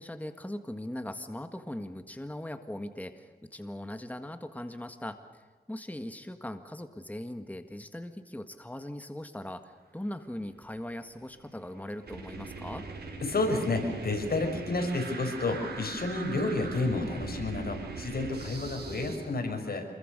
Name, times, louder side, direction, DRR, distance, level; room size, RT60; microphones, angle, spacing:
voice 1, 0.0-12.9, left 1 dB, 10° left, 8 dB, 1.7 m, -40 dB
sound 1, 11.1-19.2, right 3 dB, 85° right, 5.5 m, -40 dB
voice 2, 13.2-19.9, left 2 dB, 70° left, 4 dB, 6.0 m, -30 dB
28.0 x 22.5 x 6.7 m, 1.4 s
cardioid pair, 60°, 17 cm